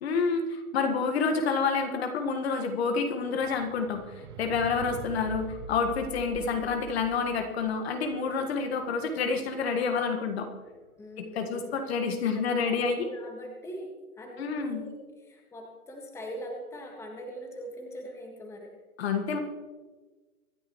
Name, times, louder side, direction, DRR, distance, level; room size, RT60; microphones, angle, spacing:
voice 1, 0.0-4.0 4.4-10.5 11.2-13.1 14.4-14.8 19.0-19.4, left 5 dB, 45° left, 5 dB, 1.7 m, -28 dB
sound 1, 3.4-9.9 10.7-10.8, right 7 dB, 20° right, 0.5 m, -44 dB
voice 2, 11.0-11.9 12.3-13.9 14.2-18.7, equal, 5° left, 1 dB, 1.7 m, -42 dB
25.0 x 10.0 x 3.1 m, 1.3 s
hypercardioid pair, 150°, 43 cm